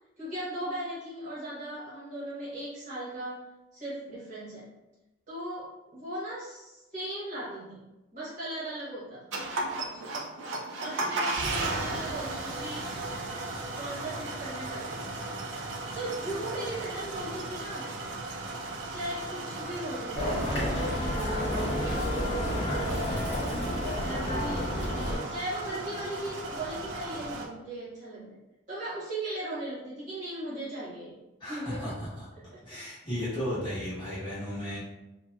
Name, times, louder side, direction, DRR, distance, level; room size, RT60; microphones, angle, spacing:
voice 1, 0.2-3.4 3.7-4.7 5.3-7.9 8.1-9.4 9.9-10.2 10.8-12.9 13.7-15.0 15.9-17.9 18.9-23.4 24.0-28.4 28.7-31.2 31.5-31.9 32.5-32.8, right 1 dB, 35° right, -9 dB, 1.0 m, -38 dB
sound 1, 9.3-27.5, right 2 dB, 65° right, 0.4 m, -36 dB
sound 2, 20.1-25.2, equal, 55° left, 1.0 m, -30 dB
Trumpet, 20.6-27.1, left 2 dB, 80° left, 0.6 m, -44 dB
voice 2, 31.4-32.3 32.6-34.8, equal, 25° left, -12 dB, 1.2 m, -34 dB
2.6 x 2.1 x 2.2 m, 0.99 s
head